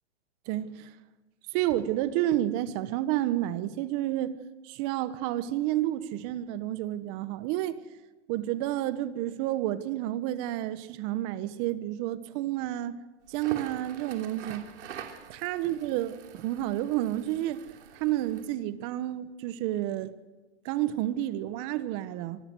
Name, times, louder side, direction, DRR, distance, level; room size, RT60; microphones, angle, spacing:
voice 1, 0.5-0.9 1.5-4.4 4.6-7.8 8.3-13.0 13.3-14.6 15.4-17.6 17.9-20.1 20.6-22.4, right 14 dB, 40° right, 1.3 m, -30 dB
Crackle, 13.3-18.5, right 9 dB, 75° right, 3.1 m, -45 dB
25.5 x 20.0 x 6.3 m
hypercardioid pair, 140°, 36 cm